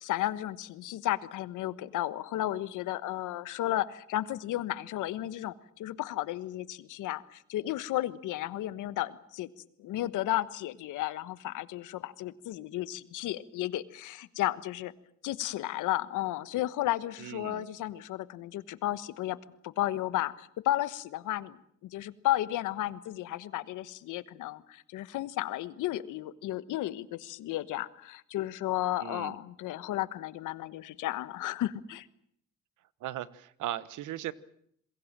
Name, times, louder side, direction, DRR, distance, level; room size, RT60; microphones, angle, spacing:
voice 1, 0.0-9.5 9.8-14.9 15.2-19.4 19.6-21.6 21.9-32.1, left 14 dB, 90° left, 15 dB, 1.3 m, -33 dB
voice 2, 17.2-17.6 29.0-29.4 33.0-34.3, right 13 dB, 85° right, 17 dB, 1.2 m, -37 dB
27.5 x 21.5 x 7.5 m, 0.69 s
cardioid pair, 90°, 30 cm